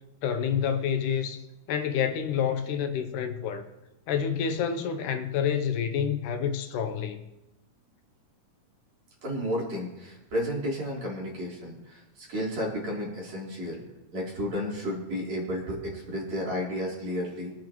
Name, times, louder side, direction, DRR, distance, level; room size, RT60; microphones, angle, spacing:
voice 1, 0.2-1.4 1.7-3.7 4.1-7.2, left 7 dB, 75° left, 2.2 m, -28 dB
voice 2, 9.2-13.8 14.1-17.5, equal, 55° right, 4.6 m, -32 dB
22.5 x 9.3 x 3.0 m
omnidirectional pair, 3.8 m